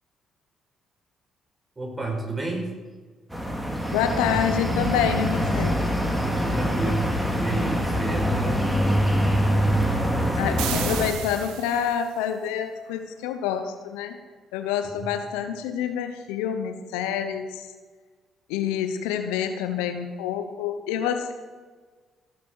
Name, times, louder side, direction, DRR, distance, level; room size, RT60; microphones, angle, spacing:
voice 1, 1.8-2.7 4.0-4.4 6.2-8.7 10.1-11.0 15.0-15.1, right 2 dB, 20° right, 1 dB, 5.3 m, -32 dB
sound 1, 3.3-11.1, equal, 5° right, 3.1 m, -24 dB
voice 2, 3.9-5.8 10.4-14.2 14.5-17.7 18.5-21.3, left 8 dB, 85° left, 8 dB, 1.0 m, -27 dB
sound 2, 10.6-12.1, right 9 dB, 80° right, 1.3 m, -33 dB
17.0 x 7.4 x 6.5 m, 1.4 s
hypercardioid pair, 55°, 0 cm